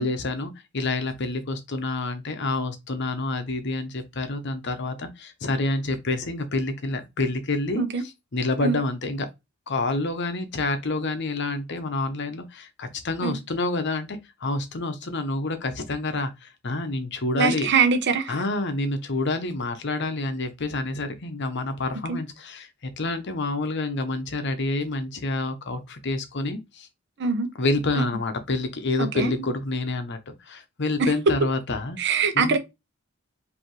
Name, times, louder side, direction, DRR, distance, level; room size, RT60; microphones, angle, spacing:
voice 1, 0.0-7.8 8.3-9.3 9.7-17.7 18.3-22.7 23.0-26.9 27.6-32.0 32.3-32.6, left 2 dB, 55° left, 0.9 m, -28 dB
voice 2, 17.3-18.3 22.1-22.2 27.2-27.5 27.9-28.0 29.0-29.3 31.0-31.1 32.0-32.6, right 5 dB, 55° right, 0.8 m, -23 dB
5.1 x 2.8 x 3.1 m
head